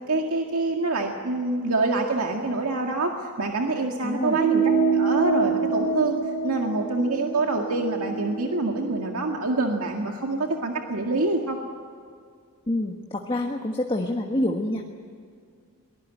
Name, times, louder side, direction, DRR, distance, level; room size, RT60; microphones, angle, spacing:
voice 1, 0.1-3.1 3.4-4.6 4.9-6.1 6.4-11.6, right 2 dB, 90° right, 2 dB, 2.0 m, -26 dB
voice 2, 4.0-4.4 12.7-14.8, left 1 dB, 25° left, 2 dB, 1.4 m, -27 dB
sound 1, 4.2-9.1, right 4 dB, 40° right, 2.7 m, -26 dB
23.5 x 19.5 x 9.1 m, 2.2 s
head